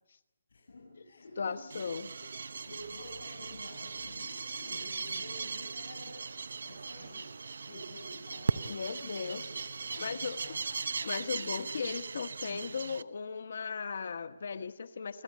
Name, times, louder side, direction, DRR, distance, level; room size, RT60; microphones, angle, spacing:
voice 1, 0.5-1.8 2.2-7.4 7.6-10.9 11.3-11.7, left 1 dB, 80° left, -1 dB, 7.1 m, -51 dB
voice 2, 1.4-2.1 8.7-9.4 10.0-10.4 11.0-15.2, left 5 dB, 55° left, 11 dB, 1.4 m, -37 dB
sound 1, 1.7-13.0, right 4 dB, 75° right, 0.9 m, -38 dB
29.0 x 14.0 x 9.7 m, 0.94 s
hypercardioid pair, 175°, 0 cm